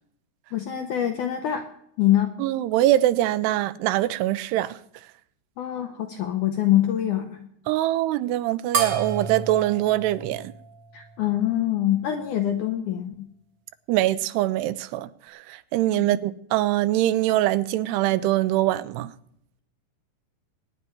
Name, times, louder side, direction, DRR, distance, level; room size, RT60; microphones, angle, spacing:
voice 1, 0.5-1.7 2.0-2.3 5.6-7.4 10.9-13.3 16.0-16.1, left 12 dB, 80° left, 1.8 m, -24 dB
voice 2, 2.4-4.8 7.7-10.5 13.9-19.1, right 14 dB, 90° right, 2.8 m, -23 dB
sound 1, 8.7-11.5, right 6 dB, 65° right, 1.1 m, -31 dB
22.5 x 9.9 x 4.5 m
omnidirectional pair, 4.7 m